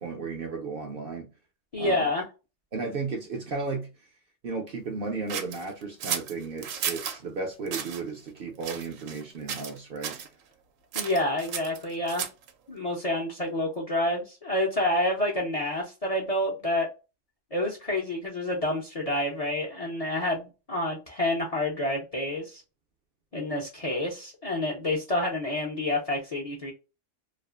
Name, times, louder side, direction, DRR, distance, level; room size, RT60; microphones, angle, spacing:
voice 1, 0.0-1.3 1.8-2.1 2.7-3.9 4.4-10.2, right 4 dB, 60° right, 0.6 m, -34 dB
voice 2, 1.7-2.3 10.9-12.3 12.7-16.9 17.5-22.6 23.3-26.7, left 1 dB, 45° left, 0.5 m, -28 dB
sound 1, 5.3-7.2 7.7-8.0 8.6-9.2 9.5-9.8 10.0-10.3 10.9-12.5, right 8 dB, 90° right, 1.0 m, -33 dB
2.5 x 2.4 x 2.3 m
omnidirectional pair, 1.3 m